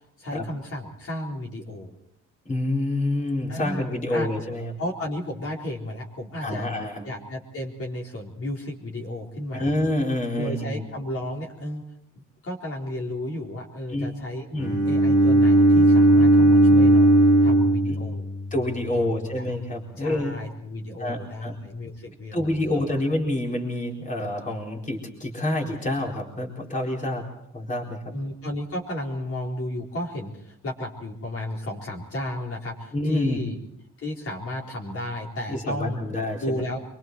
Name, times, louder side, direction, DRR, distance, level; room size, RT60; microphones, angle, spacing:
voice 1, 0.2-1.9 3.5-4.3 4.8-6.7 7.0-9.7 10.4-11.8 12.4-14.5 14.8-17.1 17.4-18.3 18.9-19.5 20.0-22.8 28.1-33.6 34.0-36.8, left 1 dB, 50° left, -1 dB, 4.2 m, -33 dB
voice 2, 2.5-4.7 6.4-7.0 9.5-10.9 13.9-14.1 14.5-14.8 17.9-18.0 18.5-20.4 21.0-21.5 22.3-27.2 27.5-28.1 32.9-33.4 35.5-36.6, left 1 dB, 25° left, 0 dB, 4.1 m, -27 dB
Bowed string instrument, 14.6-18.7, right 1 dB, 85° left, 5.4 m, -17 dB
25.0 x 23.0 x 4.6 m, 0.70 s
cardioid pair, 120°, 30 cm